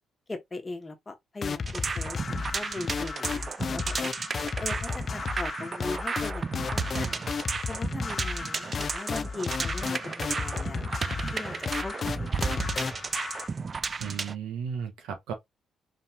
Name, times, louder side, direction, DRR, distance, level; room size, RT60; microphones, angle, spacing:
voice 1, 0.3-4.1 4.6-7.3 7.7-12.9, left 3 dB, 25° left, 1.2 m, -40 dB
sound 1, 1.4-13.5, left 5 dB, 40° left, 0.4 m, -33 dB
sound 2, 1.6-14.3, right 5 dB, 35° right, 0.3 m, -33 dB
voice 2, 14.0-15.3, right 7 dB, 90° right, 1.2 m, -34 dB
4.0 x 3.2 x 2.8 m
cardioid pair, 90°, 0 cm